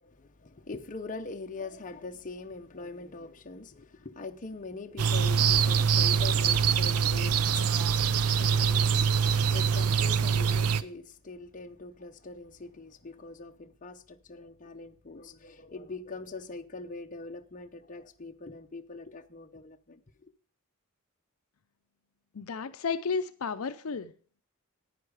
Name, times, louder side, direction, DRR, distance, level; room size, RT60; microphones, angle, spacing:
voice 1, 0.0-20.3, left 3 dB, 35° left, 0.8 m, -43 dB
sound 1, 5.0-10.8, right 7 dB, 80° right, 0.6 m, -24 dB
voice 2, 22.3-24.1, left 5 dB, 70° left, 0.6 m, -32 dB
10.0 x 9.7 x 4.8 m
head